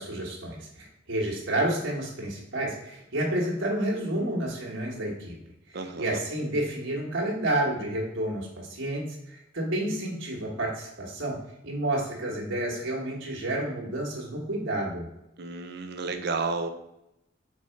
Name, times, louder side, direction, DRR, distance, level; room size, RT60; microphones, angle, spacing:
voice 1, 0.0-5.3 5.7-15.0, right 1 dB, 80° right, -3 dB, 1.6 m, -30 dB
voice 2, 5.7-6.2 15.4-16.7, right 4 dB, 60° right, 8 dB, 0.7 m, -31 dB
4.6 x 4.2 x 5.7 m, 0.86 s
head